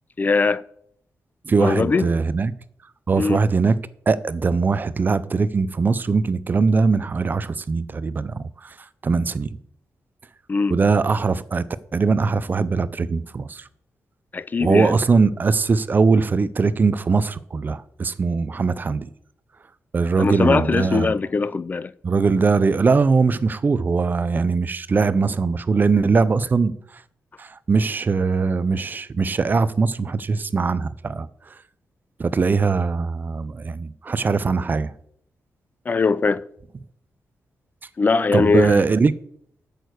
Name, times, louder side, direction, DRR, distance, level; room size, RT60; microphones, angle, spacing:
voice 1, 0.2-0.6 1.6-2.1 3.2-3.4 10.5-10.8 14.3-15.0 20.2-21.9 35.9-36.4 38.0-38.8, left 4 dB, 30° left, 0.4 m, -21 dB
voice 2, 1.4-2.5 3.1-3.8 4.1-8.8 9.0-9.5 10.7-11.7 11.9-13.7 14.6-19.1 19.9-21.1 22.0-27.0 27.4-31.6 32.2-34.9 38.3-39.1, right 4 dB, 35° right, 0.5 m, -21 dB
8.8 x 6.5 x 8.2 m
wide cardioid pair, 135°, 6 cm